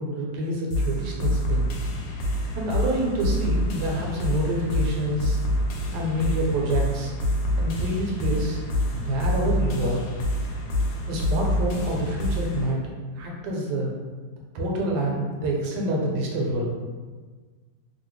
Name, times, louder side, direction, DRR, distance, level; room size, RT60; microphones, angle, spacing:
voice 1, 0.0-1.7 2.5-5.4 5.9-7.1 7.6-8.6 8.9-10.0 11.1-13.9 14.5-16.7, right 1 dB, 75° right, -2 dB, 1.2 m, -27 dB
sound 1, 0.7-12.7, equal, 85° left, 1.3 m, -27 dB
2.8 x 2.7 x 3.0 m, 1.4 s
omnidirectional pair, 1.9 m